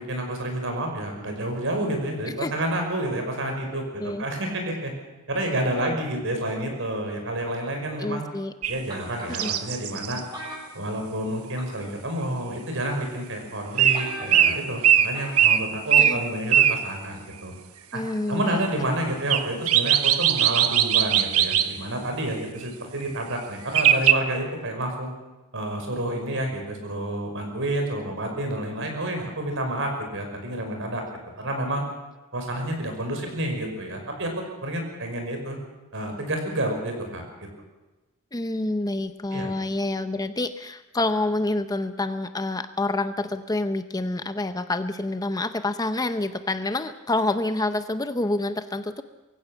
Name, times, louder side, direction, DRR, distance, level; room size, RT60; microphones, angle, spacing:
voice 1, 0.0-4.9 5.3-8.2 8.7-10.2 10.7-17.5 17.9-25.1 25.5-31.0 31.4-31.8 32.3-34.3 34.6-35.6 35.9-37.2 39.3-39.5, right 1 dB, 60° right, 3 dB, 5.7 m, -29 dB
voice 2, 8.0-8.5 9.3-9.5 16.0-16.2 17.9-18.7 38.3-49.0, left 2 dB, 15° left, 10 dB, 0.7 m, -27 dB
sound 1, 8.6-8.8 9.3-10.2 13.8-14.1 14.3-16.8 19.3-21.7 23.7-24.1, right 10 dB, 80° right, 1.2 m, -19 dB
sound 2, 8.9-9.6 10.3-11.3 11.6-11.9 12.7-12.8 13.3-13.4 13.6-13.7 13.9-14.6 15.1-15.5 15.8-15.9, right 1 dB, 20° right, 7.1 m, -38 dB
23.0 x 16.0 x 7.2 m, 1.1 s
head